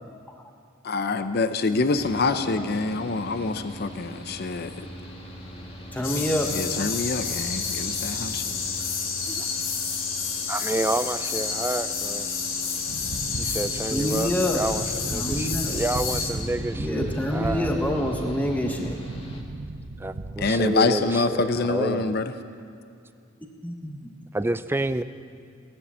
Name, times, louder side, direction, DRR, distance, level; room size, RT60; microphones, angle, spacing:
voice 1, 0.9-4.7 6.5-8.6 20.4-22.3, left 3 dB, 50° left, 0.6 m, -26 dB
Mechanical fan, 2.0-19.4, equal, 30° left, 1.6 m, -42 dB
voice 2, 2.3-2.6 5.9-6.5 13.9-14.6 15.1-15.8 16.8-19.0 23.6-24.1, left 1 dB, 10° left, 0.9 m, -27 dB
sound 1, 6.0-16.3, left 5 dB, 75° left, 1.8 m, -30 dB
voice 3, 10.5-12.3 13.4-17.9 20.0-22.2 24.3-25.0, right 2 dB, 10° right, 0.4 m, -29 dB
sound 2, 12.9-20.5, right 2 dB, 70° right, 0.9 m, -35 dB
17.5 x 11.0 x 7.3 m
head